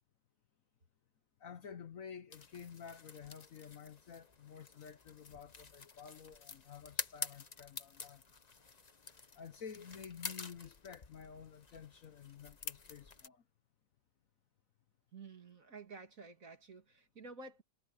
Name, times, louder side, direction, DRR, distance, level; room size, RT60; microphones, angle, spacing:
voice 1, 1.4-8.2 9.3-13.4, left 7 dB, 55° left, 1.2 m, -51 dB
sound 1, 2.3-13.3, left 5 dB, 30° left, 0.9 m, -48 dB
voice 2, 15.1-17.6, right 3 dB, 50° right, 2.8 m, -52 dB
omnidirectional pair, 1.9 m